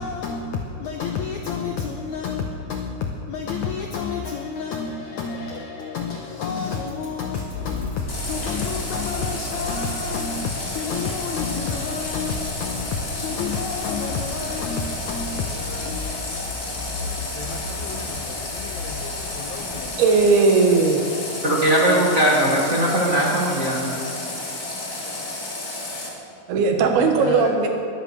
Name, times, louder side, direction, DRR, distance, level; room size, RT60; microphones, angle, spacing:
voice 1, 0.0-20.0 26.8-27.5, left 5 dB, 80° left, 3 dB, 1.7 m, -30 dB
sound 1, 7.5-19.8, left 2 dB, 65° left, 4.4 m, -35 dB
Water tap faucet, 8.1-26.1, left 2 dB, 30° left, 2.1 m, -32 dB
voice 2, 20.0-21.1 26.5-27.7, right 4 dB, 80° right, 4 dB, 3.3 m, -17 dB
voice 3, 21.4-24.0, right 1 dB, 55° right, -4 dB, 0.8 m, -19 dB
20.5 x 8.3 x 6.4 m, 2.7 s
omnidirectional pair, 4.4 m